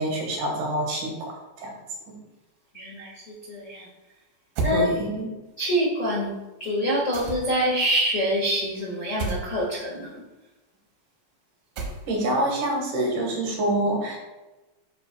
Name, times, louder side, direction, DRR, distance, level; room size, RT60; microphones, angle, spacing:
voice 1, 0.0-1.7 2.1-2.2 4.7-5.3 12.1-14.2, right 1 dB, 65° right, 0 dB, 2.9 m, -26 dB
voice 2, 2.7-3.1 3.5-3.8 4.6-4.9 5.6-6.3 6.6-10.1, equal, 90° left, -6 dB, 0.6 m, -25 dB
sound 1, 4.6-4.8 7.1-7.7 9.2-9.5 11.8-12.3, right 4 dB, 85° right, 2.8 m, -29 dB
8.0 x 8.0 x 2.2 m, 1.1 s
omnidirectional pair, 4.1 m